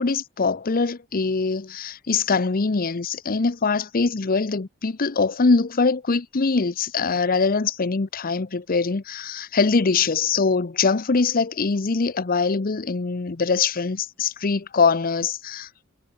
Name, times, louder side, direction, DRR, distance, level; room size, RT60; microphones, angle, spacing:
voice 1, 0.0-15.7, left 4 dB, 45° left, 0.7 m, -23 dB
head